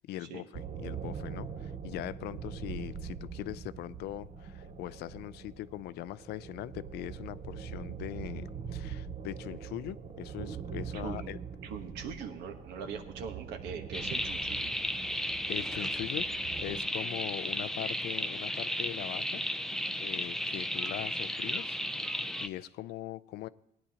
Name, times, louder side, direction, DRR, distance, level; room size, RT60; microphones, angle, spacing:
voice 1, 0.0-11.4 15.5-19.4 20.0-21.8 22.1-23.5, left 14 dB, 75° left, 0.4 m, -41 dB
sound 1, 0.5-16.8, right 7 dB, 40° right, 0.7 m, -43 dB
voice 2, 10.9-11.3 11.6-14.7, right 6 dB, 85° right, 1.2 m, -41 dB
sound 2, 13.9-22.5, left 1 dB, 5° left, 0.4 m, -34 dB
18.0 x 9.5 x 2.8 m
cardioid pair, 110°, 17 cm